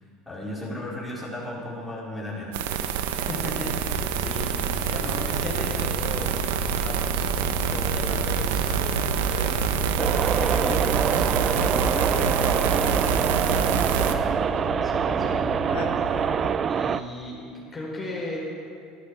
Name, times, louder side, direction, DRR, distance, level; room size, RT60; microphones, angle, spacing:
voice 1, 0.3-2.9 4.8-5.0, left 1 dB, 5° left, -8 dB, 4.7 m, -35 dB
sound 1, 2.5-14.1, right 8 dB, 75° right, 0.9 m, -26 dB
voice 2, 3.1-12.0 12.3-12.9 13.3-13.8 14.8-16.2 16.7-18.4, left 2 dB, 25° left, -4 dB, 4.7 m, -37 dB
sound 2, 3.6-16.6, left 4 dB, 70° left, 1.3 m, -36 dB
sound 3, 10.0-17.0, right 7 dB, 35° right, 0.5 m, -25 dB
13.5 x 11.5 x 7.2 m, 2.4 s
hypercardioid pair, 75°, 0 cm